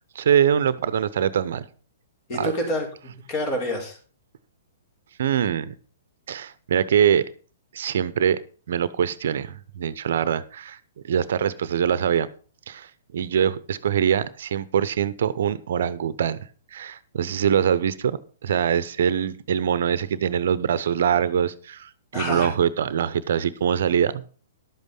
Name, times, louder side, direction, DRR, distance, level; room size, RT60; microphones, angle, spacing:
voice 1, 0.1-1.7 2.3-2.5 5.2-5.7 6.3-7.2 7.7-8.4 8.7-10.8 11.0-12.3 12.7-24.2, right 8 dB, 60° right, 0.8 m, -23 dB
voice 2, 2.3-4.0 22.1-22.5, left 1 dB, 40° left, 5.6 m, -28 dB
12.0 x 8.2 x 5.4 m
hypercardioid pair, 120°, 0 cm